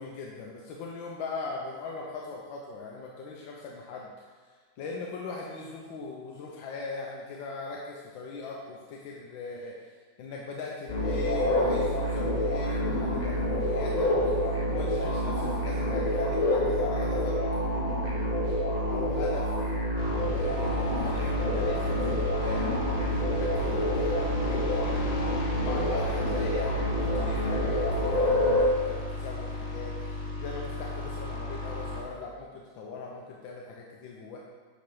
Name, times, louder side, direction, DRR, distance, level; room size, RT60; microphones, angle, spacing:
voice 1, 0.0-4.3 4.8-9.9 10.2-17.4 18.9-19.5 20.4-25.1 25.6-32.5 32.7-34.4, left 4 dB, 85° left, -2 dB, 1.5 m, -40 dB
sound 1, 10.9-28.6, equal, 35° left, 0.7 m, -27 dB
sound 2, 20.0-32.0, left 2 dB, 50° left, 1.1 m, -35 dB
8.6 x 3.2 x 5.3 m, 1.5 s
omnidirectional pair, 2.0 m